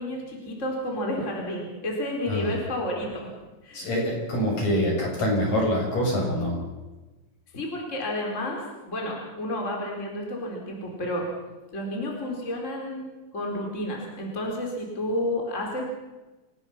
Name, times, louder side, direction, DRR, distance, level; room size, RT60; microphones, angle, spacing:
voice 1, 0.0-3.3 3.6-3.9 7.5-11.3 11.7-13.1 13.3-15.8, left 1 dB, 20° left, 0 dB, 4.3 m, -31 dB
voice 2, 3.7-6.6, equal, 60° left, -1 dB, 8.6 m, -25 dB
28.0 x 19.5 x 5.9 m, 1.1 s
omnidirectional pair, 3.5 m